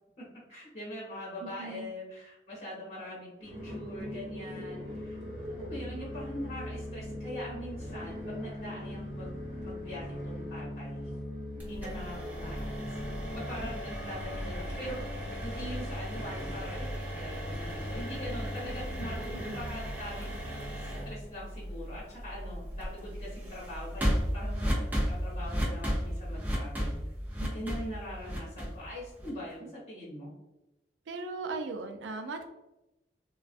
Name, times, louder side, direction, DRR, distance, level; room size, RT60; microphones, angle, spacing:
voice 1, 0.2-5.2 5.5-11.1 11.6-13.0 13.3-19.2 19.5-20.3 20.8-27.1 27.5-30.3, equal, 40° left, -7 dB, 1.1 m, -42 dB
voice 2, 1.4-1.9 19.4-19.7 27.4-27.8 31.1-32.5, right 3 dB, 85° right, 6 dB, 0.4 m, -38 dB
sound 1, 3.4-21.0, left 1 dB, 30° right, 1.2 m, -40 dB
sound 2, 11.6-29.5, equal, 10° right, 0.5 m, -36 dB
2.4 x 2.2 x 2.5 m, 0.95 s
head